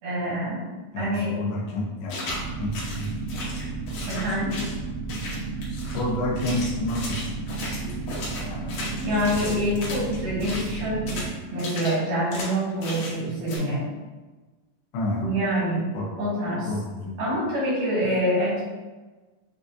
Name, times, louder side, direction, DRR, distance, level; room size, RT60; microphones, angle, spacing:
voice 1, 0.0-0.6 1.0-1.4 4.1-4.5 9.0-11.2 11.5-13.9 15.1-15.9 16.2-16.7 17.2-18.6, equal, 80° right, -9 dB, 3.5 m, -26 dB
voice 2, 0.9-2.3 2.6-3.1 5.7-7.2 7.6-8.8 9.3-9.4 14.9-15.3 15.9-16.1 16.7-17.1, left 1 dB, 85° left, -3 dB, 2.7 m, -30 dB
sound 1, 2.1-2.4 2.7-4.8 5.1-6.0 6.4-10.7 11.1-11.3 11.6-12.0 12.3-12.5 12.8-13.2 13.5-13.6, left 2 dB, 65° left, 2.1 m, -35 dB
sound 2, 2.3-11.3, right 4 dB, 65° right, 1.5 m, -33 dB
7.2 x 2.5 x 2.6 m, 1.2 s
omnidirectional pair, 4.2 m